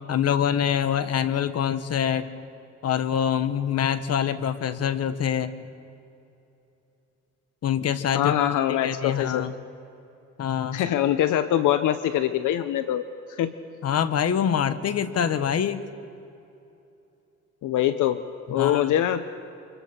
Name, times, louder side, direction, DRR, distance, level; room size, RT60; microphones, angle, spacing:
voice 1, 0.1-2.3 2.8-5.5 7.6-8.3 8.7-9.5 10.4-10.8 13.8-15.8 18.6-18.9, left 8 dB, 55° left, 12 dB, 1.2 m, -25 dB
voice 2, 8.1-9.5 10.7-13.0 13.3-13.5 17.6-18.2 18.5-19.2, left 11 dB, 80° left, 11 dB, 0.8 m, -23 dB
28.5 x 26.0 x 4.4 m, 2.8 s
cardioid pair, 90°, 30 cm